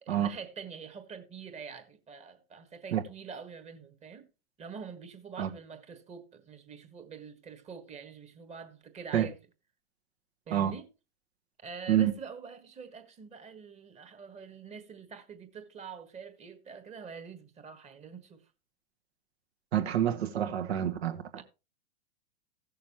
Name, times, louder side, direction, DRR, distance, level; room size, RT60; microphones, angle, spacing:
voice 1, 0.0-4.2 4.6-9.5 10.5-10.9 11.6-18.4 21.4-21.5, right 6 dB, 20° right, 1.5 m, -45 dB
voice 2, 19.7-21.4, right 11 dB, 65° right, 1.7 m, -27 dB
16.5 x 6.7 x 3.0 m
hypercardioid pair, 115°, 33 cm